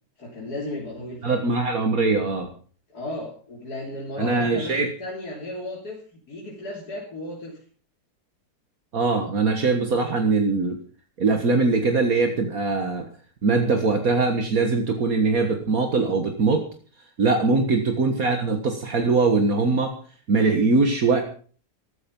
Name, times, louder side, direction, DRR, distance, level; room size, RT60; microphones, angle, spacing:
voice 1, 0.2-1.4 2.9-7.6 17.7-17.8, left 1 dB, 80° left, -3 dB, 3.9 m, -35 dB
voice 2, 1.2-2.5 4.2-4.9 8.9-10.8 11.2-13.1 13.4-16.7 17.2-20.0 20.3-21.2, right 3 dB, 65° right, 4 dB, 2.1 m, -21 dB
14.5 x 13.5 x 5.4 m, 0.42 s
omnidirectional pair, 1.6 m